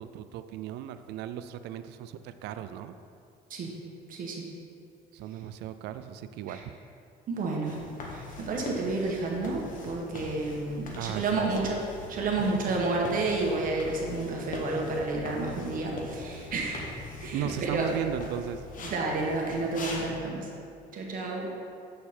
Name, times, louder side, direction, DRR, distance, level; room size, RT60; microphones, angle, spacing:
voice 1, 0.0-2.9 5.1-6.6 11.0-11.5 12.4-12.6 17.3-18.6, right 11 dB, 85° right, 11 dB, 0.4 m, -36 dB
voice 2, 4.1-4.4 6.5-6.6 7.3-7.8 8.1-11.8 12.1-17.9 18.8-20.5 20.9-21.5, right 3 dB, 55° right, -1 dB, 1.6 m, -30 dB
sound 1, 7.6-20.1, left 3 dB, 50° left, 1.6 m, -42 dB
8.2 x 6.7 x 4.4 m, 2.5 s
cardioid pair, 110°, 17 cm